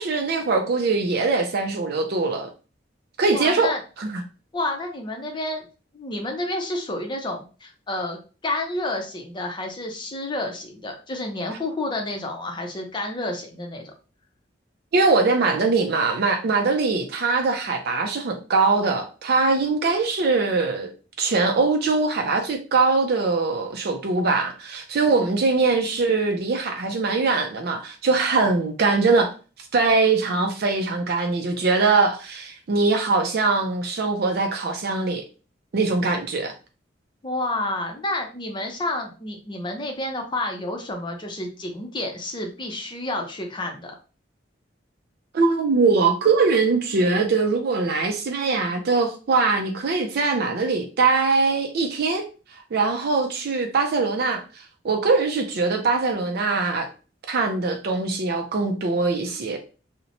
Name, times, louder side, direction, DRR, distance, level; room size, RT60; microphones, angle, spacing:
voice 1, 0.0-2.5 3.2-4.2 14.9-20.9 21.2-29.3 29.7-35.2 35.7-36.5 45.3-52.2 52.7-56.9 57.3-59.6, right 4 dB, 55° right, 0.4 m, -22 dB
voice 2, 3.3-3.8 4.5-5.6 5.9-13.9 25.1-25.3 37.2-44.0, left 2 dB, 25° left, 0.5 m, -30 dB
2.9 x 2.1 x 2.6 m
head